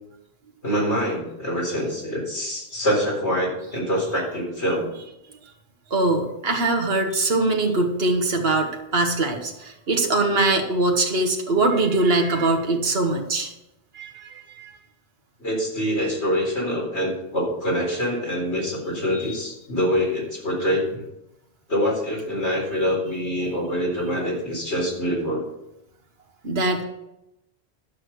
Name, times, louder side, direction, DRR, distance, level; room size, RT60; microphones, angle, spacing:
voice 1, 0.6-4.9 15.4-21.0 21.7-25.4, equal, 80° left, -3 dB, 4.3 m, -25 dB
voice 2, 5.9-13.5 13.9-14.7 19.1-19.3 26.4-26.8, right 2 dB, 65° right, 2 dB, 1.7 m, -22 dB
11.5 x 6.4 x 6.9 m, 0.88 s
omnidirectional pair, 1.1 m